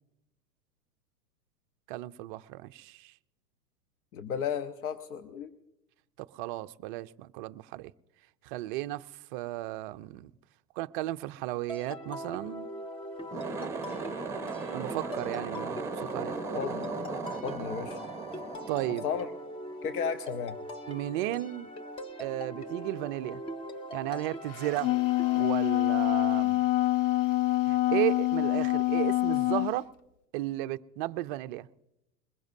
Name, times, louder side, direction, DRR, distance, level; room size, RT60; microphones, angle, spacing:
voice 1, 1.9-3.1 6.2-7.9 8.4-9.1 9.3-10.3 10.8-12.7 14.7-16.4 18.7-19.1 20.9-21.7 22.2-23.4 23.9-24.9 25.3-26.6 27.7-29.9 30.3-31.7, right 17 dB, 35° right, 0.4 m, -34 dB
voice 2, 4.1-5.5 16.5-16.9 17.4-18.0 19.0-19.3 19.8-20.6, left 7 dB, 70° left, 1.1 m, -33 dB
sound 1, 11.7-25.4, left 1 dB, 10° left, 0.6 m, -41 dB
sound 2, 13.2-19.7, right 4 dB, 5° right, 1.2 m, -37 dB
Wind instrument woodwind instrument, 24.6-29.8, left 17 dB, 50° left, 0.6 m, -26 dB
21.5 x 20.5 x 2.7 m
hypercardioid pair, 110°, 47 cm